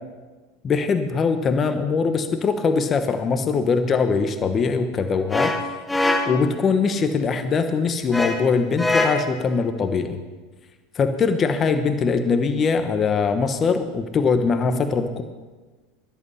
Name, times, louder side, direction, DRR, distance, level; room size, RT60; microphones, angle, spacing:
voice 1, 0.6-5.5 6.3-10.2 10.9-15.2, left 5 dB, 25° left, 8 dB, 1.2 m, -22 dB
sound 1, 5.3-6.6 8.1-9.4, left 2 dB, 10° left, 1.4 m, -23 dB
22.5 x 8.1 x 5.7 m, 1.3 s
supercardioid pair, 130°, 0 cm